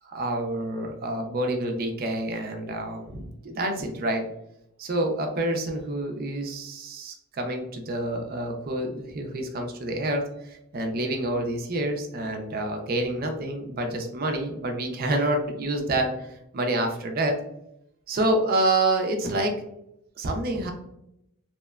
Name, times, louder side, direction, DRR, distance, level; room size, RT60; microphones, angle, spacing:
voice 1, 0.1-4.3 4.8-16.3 16.5-17.4 18.1-19.5 20.2-20.7, right 1 dB, 45° right, 3 dB, 0.4 m, -27 dB
2.8 x 2.1 x 2.2 m, 0.79 s
head